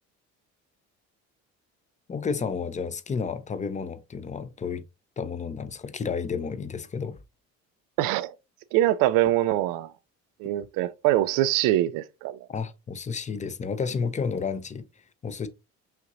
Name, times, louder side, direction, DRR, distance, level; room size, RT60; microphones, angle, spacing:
voice 1, 2.1-4.8 5.2-7.2 12.5-14.8 15.2-15.5, left 5 dB, 20° left, 0.5 m, -31 dB
voice 2, 8.0-8.3 8.7-9.9 10.4-12.5, right 14 dB, 80° right, 0.5 m, -24 dB
5.7 x 2.9 x 2.6 m
supercardioid pair, 95°, 32 cm